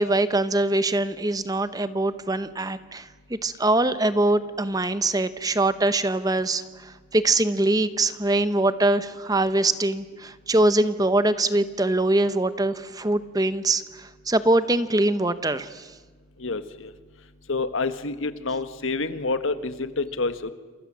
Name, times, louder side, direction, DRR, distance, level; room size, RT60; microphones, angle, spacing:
voice 1, 0.0-15.9, right 2 dB, 15° right, 13 dB, 0.9 m, -23 dB
voice 2, 16.4-16.9 17.5-20.5, left 3 dB, 70° left, 11 dB, 1.5 m, -28 dB
28.5 x 28.0 x 7.5 m, 1.4 s
head